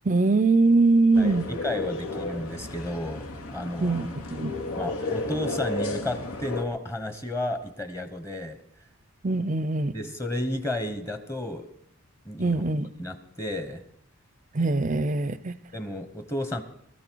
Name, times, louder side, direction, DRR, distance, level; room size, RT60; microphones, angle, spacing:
voice 1, 0.0-1.5 3.8-4.5 9.2-9.9 12.4-12.9 14.5-15.5, right 3 dB, 35° right, 16 dB, 0.6 m, -22 dB
sound 1, 1.1-6.6, left 2 dB, 80° left, 2.3 m, -33 dB
voice 2, 1.2-3.9 4.8-8.6 9.9-11.7 12.2-12.6 13.0-13.8 15.7-16.6, left 1 dB, 15° left, 8 dB, 1.0 m, -32 dB
20.5 x 13.5 x 4.6 m, 0.68 s
head